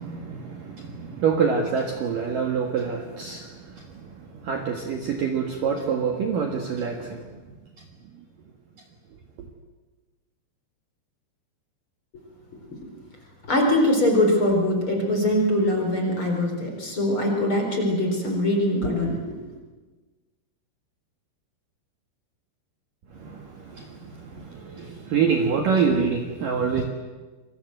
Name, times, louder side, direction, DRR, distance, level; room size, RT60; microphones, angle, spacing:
voice 1, 0.0-7.2 23.2-26.8, right 6 dB, 55° right, 3 dB, 2.7 m, -26 dB
voice 2, 13.5-19.2, left 1 dB, 25° left, 2 dB, 4.8 m, -22 dB
27.5 x 22.5 x 7.9 m, 1.3 s
omnidirectional pair, 5.6 m